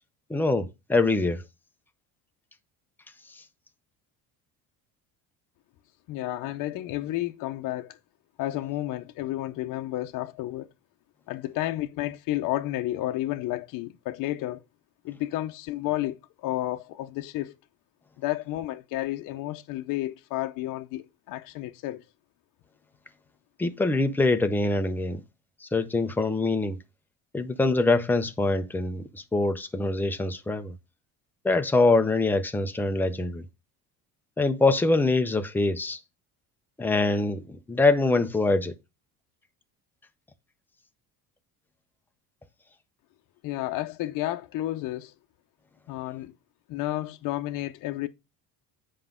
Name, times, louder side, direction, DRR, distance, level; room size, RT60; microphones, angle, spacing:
voice 1, 0.3-1.4 23.6-25.2 25.6-26.8 27.3-30.8 31.4-33.5 34.4-36.0 36.8-38.7, left 2 dB, 5° left, 0.4 m, -24 dB
voice 2, 6.1-8.0 8.4-10.7 11.3-14.6 15.0-17.6 18.2-22.0 43.4-45.1 45.9-46.3 46.7-48.1, left 15 dB, 60° left, 0.7 m, -31 dB
7.7 x 5.1 x 3.6 m
cardioid pair, 160°, 38 cm